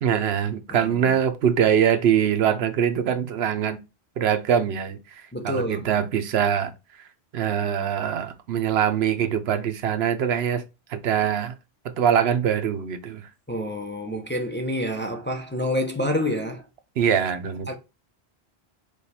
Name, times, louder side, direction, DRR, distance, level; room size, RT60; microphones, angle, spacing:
voice 1, 0.0-3.8 4.2-6.7 7.3-10.6 10.9-11.5 11.8-13.3 17.0-17.7, right 8 dB, 80° right, 0.9 m, -23 dB
voice 2, 0.7-1.2 5.3-5.9 13.5-16.6 17.7-17.8, left 1 dB, 15° left, 0.5 m, -28 dB
4.9 x 2.3 x 4.1 m
omnidirectional pair, 1.1 m